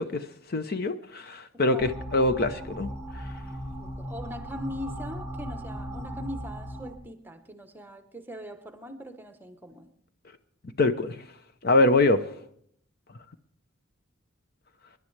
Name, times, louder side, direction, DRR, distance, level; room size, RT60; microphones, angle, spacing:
voice 1, 0.0-3.2 10.8-11.2 11.6-12.2, left 2 dB, 50° left, 0.8 m, -24 dB
sound 1, 1.8-7.0, equal, 5° left, 1.7 m, -37 dB
voice 2, 3.8-9.9, equal, 10° right, 1.0 m, -40 dB
27.0 x 11.0 x 3.3 m
head